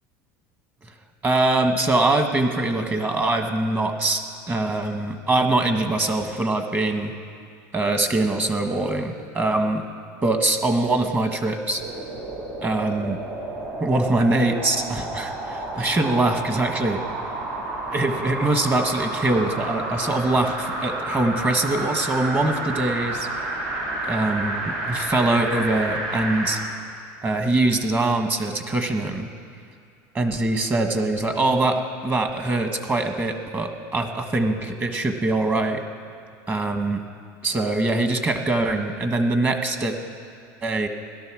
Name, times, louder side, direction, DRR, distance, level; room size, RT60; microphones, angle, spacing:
voice 1, 1.2-7.1 7.7-9.8 10.2-11.8 12.6-13.2 13.8-17.0 17.9-23.3 24.0-26.6 27.2-29.3 30.1-35.8 36.5-37.0 37.4-40.0 40.6-40.9, right 2 dB, 20° right, 6 dB, 1.5 m, -23 dB
sound 1, 11.7-26.6 27.1-27.2, right 2 dB, 70° right, 4.8 m, -30 dB
17.0 x 12.5 x 6.3 m, 2.4 s
supercardioid pair, 120°, 9 cm